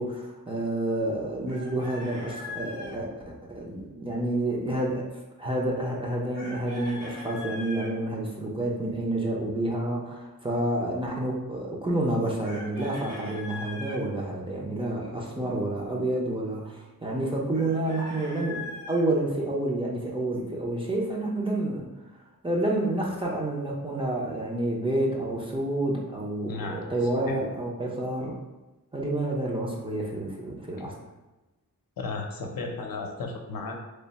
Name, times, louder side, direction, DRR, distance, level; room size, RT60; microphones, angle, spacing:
voice 1, 0.0-5.1 5.4-21.9 22.4-28.4 28.9-31.0, right 1 dB, 15° right, -3 dB, 0.5 m, -29 dB
Chicken rooster, 1.5-3.0 6.3-7.9 12.4-14.0 17.5-19.0, left 2 dB, 75° right, 1.2 m, -40 dB
voice 2, 26.5-26.9 27.3-27.4 32.0-33.8, left 3 dB, 80° left, 2 dB, 0.6 m, -34 dB
3.3 x 2.0 x 4.0 m, 1.1 s
wide cardioid pair, 145°, 34 cm